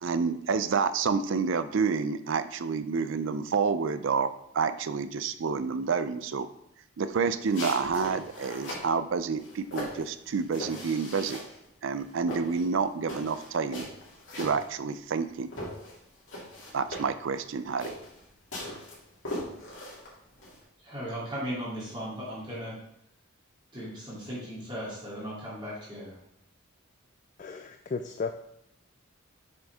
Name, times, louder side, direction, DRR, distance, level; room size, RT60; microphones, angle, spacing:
voice 1, 0.0-6.5 7.0-11.4 11.8-13.9 14.4-15.5 16.7-17.9, right 5 dB, 65° right, 12 dB, 0.4 m, -29 dB
sound 1, 7.4-8.9 9.4-11.6 11.9-15.2 15.5-20.6, left 1 dB, 65° left, 2.9 m, -39 dB
voice 2, 20.8-22.7 23.7-26.2, equal, 25° right, -9 dB, 2.8 m, -37 dB
voice 3, 27.4-28.3, left 4 dB, 35° left, 7 dB, 0.3 m, -34 dB
7.4 x 6.3 x 3.6 m, 0.76 s
head